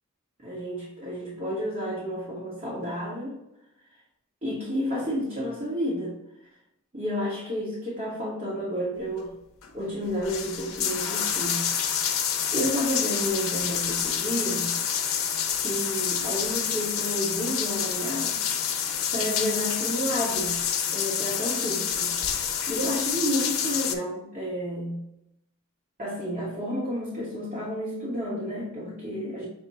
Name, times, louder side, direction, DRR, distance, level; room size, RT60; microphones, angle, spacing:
voice 1, 0.4-3.4 4.4-6.1 6.9-9.3 9.7-11.7 12.5-14.7 15.6-18.4 19.1-20.6 20.9-22.1 22.7-25.0 26.0-29.5, equal, 35° right, -7 dB, 1.2 m, -31 dB
sound 1, 9.6-9.7 10.1-23.9, left 8 dB, 80° left, 0.6 m, -28 dB
6.0 x 2.2 x 4.0 m, 0.86 s
head